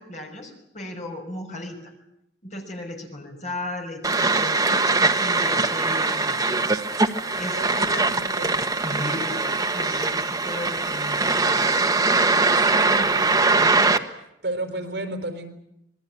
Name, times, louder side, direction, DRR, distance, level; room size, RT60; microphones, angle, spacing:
voice 1, 0.0-1.9 2.4-6.5 7.4-8.1 8.8-12.5 12.8-13.2, left 1 dB, 40° left, 3 dB, 5.8 m, -36 dB
sound 1, 4.0-14.0, right 3 dB, 20° right, 1.2 m, -22 dB
voice 2, 7.5-8.5 12.5-12.6 13.1-13.7 14.4-15.5, right 1 dB, 65° right, 7 dB, 4.5 m, -33 dB
26.5 x 20.5 x 8.9 m, 0.80 s
head